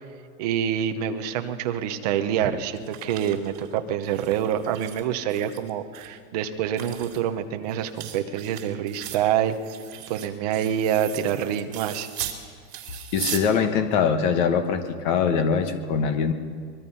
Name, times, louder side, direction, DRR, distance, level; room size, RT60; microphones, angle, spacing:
voice 1, 0.4-9.6 10.1-12.1, right 9 dB, 25° right, 7 dB, 0.8 m, -26 dB
sound 1, 2.4-5.0 5.3-6.1 6.5-12.4 12.7-13.4, right 11 dB, 60° right, 3.7 m, -38 dB
voice 2, 13.1-16.3, left 6 dB, 30° left, 8 dB, 1.3 m, -22 dB
24.5 x 21.5 x 5.6 m, 2.1 s
supercardioid pair, 170°, 45 cm